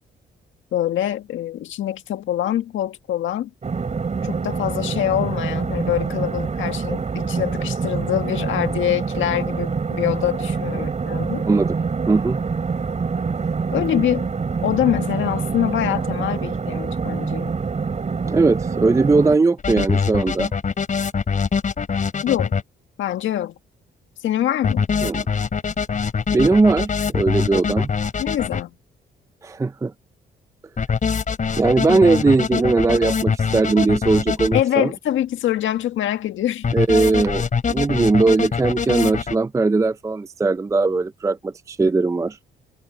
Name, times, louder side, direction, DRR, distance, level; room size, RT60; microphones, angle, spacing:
voice 1, 0.7-3.5 4.2-11.5 13.7-14.3 14.6-17.5 22.2-22.5 23.0-23.6 24.2-24.9 28.2-28.7 34.5-36.7, left 11 dB, 75° left, 1.7 m, -24 dB
sound 1, 3.6-19.4, right 5 dB, 35° right, 4.0 m, -26 dB
voice 2, 11.5-11.8 12.1-12.4 18.3-20.5 25.0-25.2 26.3-27.9 29.4-29.9 31.6-34.9 36.7-42.4, right 3 dB, 15° right, 0.4 m, -19 dB
sound 2, 19.6-22.6 24.6-28.6 30.8-34.6 36.6-39.3, left 5 dB, 40° left, 3.7 m, -23 dB
cardioid pair, 90°, 20 cm